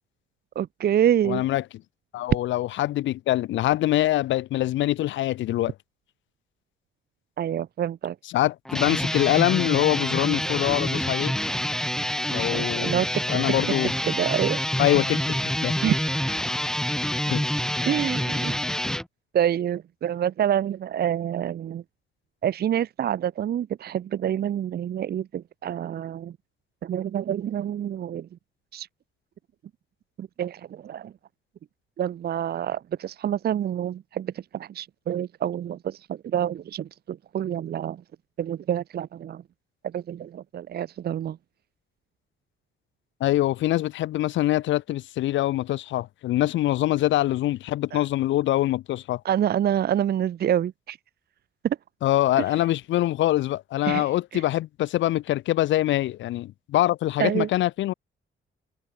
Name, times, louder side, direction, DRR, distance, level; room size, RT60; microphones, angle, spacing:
voice 1, 0.6-1.4 7.4-8.1 12.5-13.1 14.0-14.6 15.8-16.1 17.9-18.5 19.3-21.8 22.4-26.3 26.8-28.3 28.7-28.9 30.2-31.1 32.0-38.0 38.4-39.4 39.9-41.4 47.9-48.0 49.2-51.0 51.6-51.8 53.9-54.4 57.2-57.5, right 10 dB, 55° right, 0.7 m, -27 dB
voice 2, 1.2-1.6 2.1-5.7 8.2-11.3 12.3-13.0 13.3-13.9 14.8-15.4 15.6-15.7 17.3-17.4 43.2-49.2 52.0-57.9, left 14 dB, 75° left, 0.5 m, -24 dB
sound 1, 8.7-19.0, equal, 5° left, 1.2 m, -27 dB
cardioid pair, 90°, 20 cm